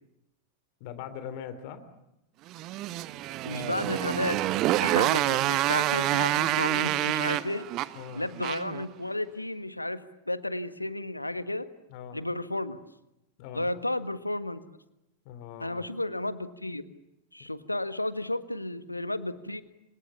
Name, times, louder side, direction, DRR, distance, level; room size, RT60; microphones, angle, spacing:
voice 1, 0.8-1.8 7.9-8.2 11.9-12.2 13.4-13.7 15.2-15.9, left 8 dB, 45° left, 11 dB, 3.2 m, -41 dB
Motorcycle, 2.5-8.8, right 15 dB, 40° right, 1.2 m, -27 dB
voice 2, 3.4-4.4 4.8-7.6 8.1-10.0 10.3-11.7 12.1-12.8 13.5-14.6 15.6-16.9 17.3-19.6, left 1 dB, 85° left, 13 dB, 1.6 m, -32 dB
30.0 x 27.0 x 7.2 m, 0.88 s
figure-of-eight pair, 90°, 0 cm